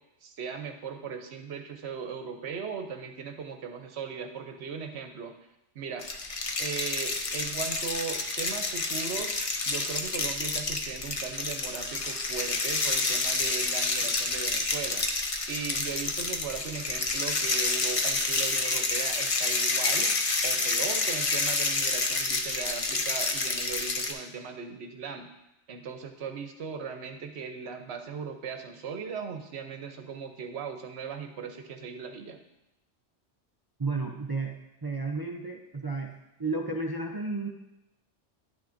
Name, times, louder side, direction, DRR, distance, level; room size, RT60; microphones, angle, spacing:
voice 1, 0.2-5.3 5.7-6.0 6.6-9.3 9.7-15.1 15.5-20.1 20.4-25.3 25.7-32.4, right 6 dB, 65° right, 6 dB, 0.9 m, -38 dB
sound 1, 6.0-24.1, left 3 dB, 40° left, 0.5 m, -29 dB
voice 2, 33.8-34.5 34.8-36.1 36.4-37.5, right 3 dB, 35° right, 0 dB, 0.4 m, -32 dB
10.5 x 5.9 x 2.6 m, 0.88 s
omnidirectional pair, 1.3 m